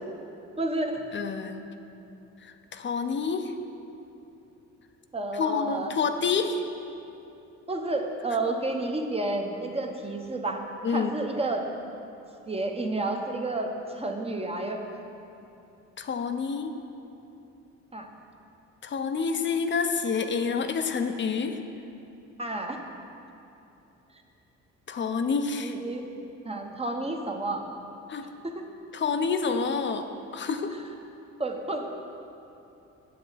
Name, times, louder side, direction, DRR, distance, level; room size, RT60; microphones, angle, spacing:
voice 1, 0.6-1.1 5.1-5.9 7.7-10.6 10.9-11.6 12.5-14.8 17.9-18.1 22.4-22.8 25.6-26.0 26.4-27.7 28.4-28.5 31.4-31.9, right 2 dB, 20° right, 3 dB, 0.9 m, -30 dB
voice 2, 1.1-1.6 2.4-3.5 5.3-6.6 10.8-11.1 16.0-16.7 18.8-21.6 24.9-25.8 28.1-28.3 28.9-30.1 30.3-30.8, left 5 dB, 40° left, 7 dB, 0.6 m, -28 dB
8.6 x 7.6 x 4.0 m, 2.9 s
cardioid pair, 90°, 30 cm